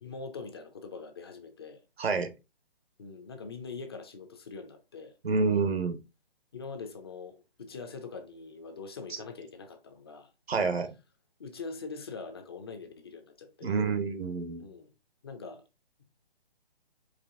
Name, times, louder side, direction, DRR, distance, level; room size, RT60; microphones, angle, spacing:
voice 1, 0.0-1.8 3.0-5.2 6.5-10.3 11.4-13.7 14.6-14.9 15.2-15.6, left 4 dB, 25° left, 0.5 m, -43 dB
voice 2, 2.0-2.3 5.2-6.0 9.1-9.2 10.5-10.9 13.6-14.7, right 4 dB, 90° right, 1.1 m, -28 dB
4.9 x 2.8 x 3.6 m
hypercardioid pair, 155°, 30 cm